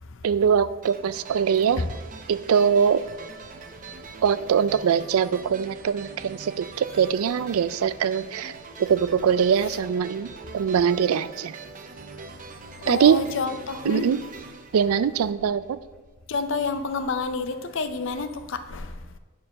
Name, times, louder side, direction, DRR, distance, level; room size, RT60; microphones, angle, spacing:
voice 1, 0.2-1.8 2.3-3.0 4.2-8.5 8.8-11.6 12.9-13.2 13.8-14.2 14.7-15.8, right 7 dB, 85° right, 16 dB, 0.4 m, -22 dB
sound 1, 0.8-15.7, right 4 dB, 40° right, 0.6 m, -43 dB
voice 2, 12.8-14.1 16.3-19.0, left 4 dB, 60° left, 10 dB, 0.6 m, -29 dB
9.6 x 4.7 x 5.3 m, 1.3 s
head